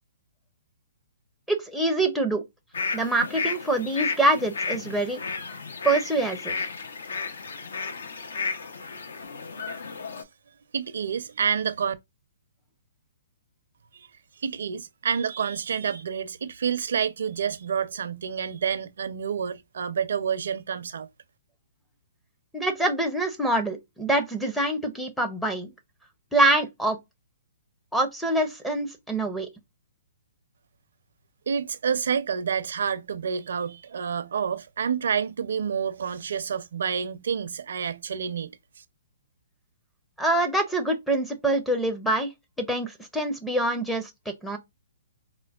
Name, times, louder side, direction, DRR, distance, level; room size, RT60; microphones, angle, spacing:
voice 1, 1.5-2.4 2.9-5.2 5.8-6.7 22.5-25.7 26.3-27.0 27.9-29.5 40.2-42.3 42.6-44.1 44.4-44.6, right 2 dB, ahead, 0.5 m, -25 dB
sound 1, 2.7-10.2, left 4 dB, 80° left, 0.6 m, -33 dB
voice 2, 10.7-11.9 13.9-14.1 14.4-21.1 31.5-38.6, right 7 dB, 70° right, 0.5 m, -28 dB
4.3 x 2.1 x 2.3 m
hypercardioid pair, 150°, 0 cm